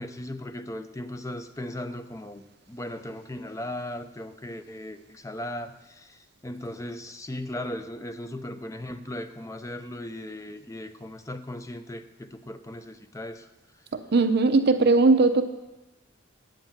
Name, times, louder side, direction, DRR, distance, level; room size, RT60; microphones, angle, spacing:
voice 1, 0.0-13.5, left 1 dB, 15° left, 9 dB, 0.5 m, -37 dB
voice 2, 13.9-15.4, right 3 dB, 55° right, 9 dB, 0.6 m, -19 dB
8.8 x 7.9 x 7.2 m, 1.0 s
head